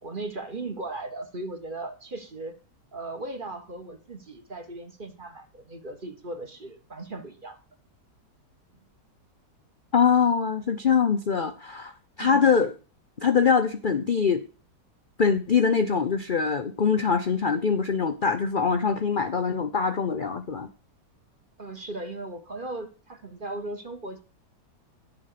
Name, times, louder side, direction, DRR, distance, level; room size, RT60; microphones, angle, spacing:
voice 1, 0.0-2.5 2.9-7.6 12.2-12.5 21.6-24.2, right 2 dB, 30° right, 7 dB, 1.4 m, -37 dB
voice 2, 9.9-11.9 12.2-12.7 13.2-14.4 15.2-20.7, left 6 dB, 45° left, 9 dB, 0.6 m, -23 dB
10.5 x 7.1 x 6.6 m, 0.35 s
omnidirectional pair, 1.9 m